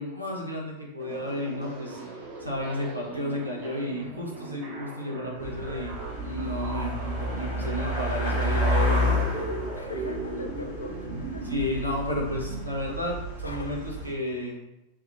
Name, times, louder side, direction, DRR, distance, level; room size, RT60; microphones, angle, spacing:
voice 1, 0.0-5.9 6.2-9.2 9.9-10.0 11.4-14.6, left 1 dB, 85° right, -1 dB, 0.7 m, -32 dB
sound 1, 1.0-12.6, right 2 dB, 40° right, 0.6 m, -38 dB
sound 2, 5.4-14.1, left 1 dB, 70° right, 1.4 m, -30 dB
voice 2, 9.7-11.4 13.4-13.9, left 3 dB, 75° left, 6 dB, 0.3 m, -41 dB
3.4 x 2.2 x 2.7 m, 0.93 s
figure-of-eight pair, 90°, 0 cm